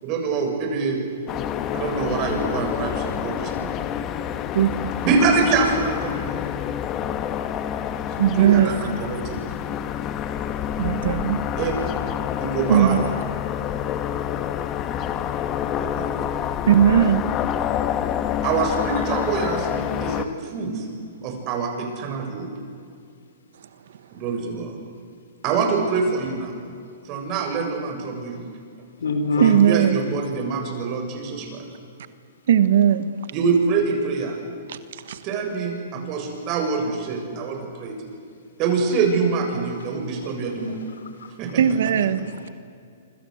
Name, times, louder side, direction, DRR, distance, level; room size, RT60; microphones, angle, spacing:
voice 1, 0.0-1.0 1.7-3.7 5.0-6.4 8.0-9.4 11.6-11.9 12.4-13.0 15.8-16.1 18.4-20.8 21.2-22.5 24.1-24.8 25.4-26.5 27.0-28.4 29.4-31.6 33.3-34.3 35.2-38.0 38.6-40.8 41.4-41.6, right 4 dB, 35° right, 7.4 m, -25 dB
sound 1, 1.3-20.2, left 9 dB, 30° left, 1.6 m, -27 dB
voice 2, 4.5-4.9 8.2-8.8 10.8-11.4 12.7-13.1 16.7-17.2 29.4-30.0 32.5-33.1 34.7-35.2 41.6-42.3, right 10 dB, 70° right, 1.4 m, -18 dB
voice 3, 29.0-29.7 39.9-41.3 42.2-42.5, left 3 dB, 85° left, 4.8 m, -29 dB
27.0 x 26.5 x 8.1 m
hypercardioid pair, 135°, 0 cm